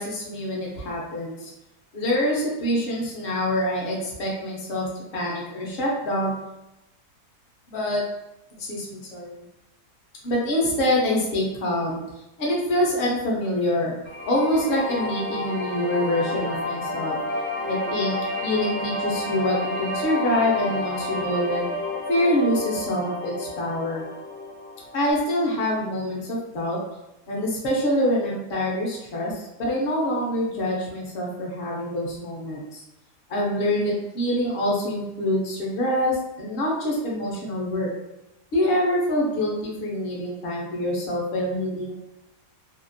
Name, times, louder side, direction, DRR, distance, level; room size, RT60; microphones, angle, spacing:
voice 1, 0.0-1.5 1.9-6.3 7.7-8.0 8.6-9.4 10.2-12.0 12.4-14.0 14.3-17.2 17.6-21.6 22.1-24.1 24.9-26.8 27.3-32.8 33.3-37.9 38.5-41.9, left 1 dB, 55° left, -3 dB, 0.7 m, -25 dB
sound 1, 14.1-25.1, left 2 dB, 75° left, 0.3 m, -30 dB
2.8 x 2.5 x 2.6 m, 0.93 s
omnidirectional pair, 1.8 m